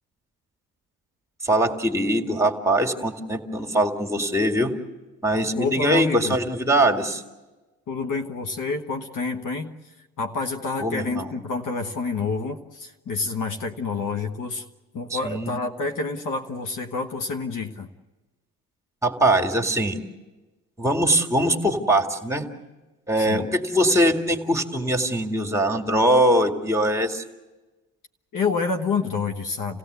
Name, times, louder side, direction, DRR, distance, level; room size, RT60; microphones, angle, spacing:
voice 1, 1.4-4.7 5.2-7.2 10.8-11.3 15.1-15.5 19.0-20.0 20.8-22.5 23.1-27.2, right 1 dB, 10° right, 2 dB, 2.2 m, -22 dB
voice 2, 5.6-6.4 7.9-14.6 14.9-17.9 23.2-23.5 28.3-29.8, left 4 dB, 55° left, 5 dB, 1.4 m, -28 dB
27.0 x 16.5 x 8.2 m, 1.2 s
hypercardioid pair, 50°, 38 cm